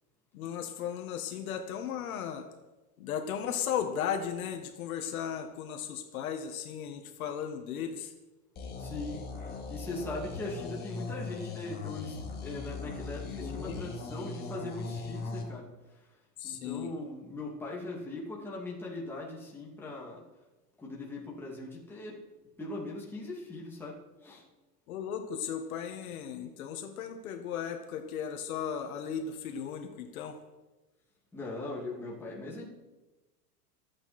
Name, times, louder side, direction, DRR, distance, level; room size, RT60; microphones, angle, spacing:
voice 1, 0.3-2.5 3.0-8.1 13.4-13.9 16.4-16.9 24.9-30.4, left 8 dB, 65° left, 6 dB, 1.8 m, -36 dB
sound 1, 8.6-15.4, left 3 dB, 20° left, 2.5 m, -39 dB
voice 2, 8.8-15.7 16.4-20.2 20.8-22.2 22.6-24.4 31.3-32.7, left 2 dB, 5° left, -4 dB, 2.6 m, -40 dB
25.5 x 8.8 x 4.4 m, 1.1 s
supercardioid pair, 165°, 46 cm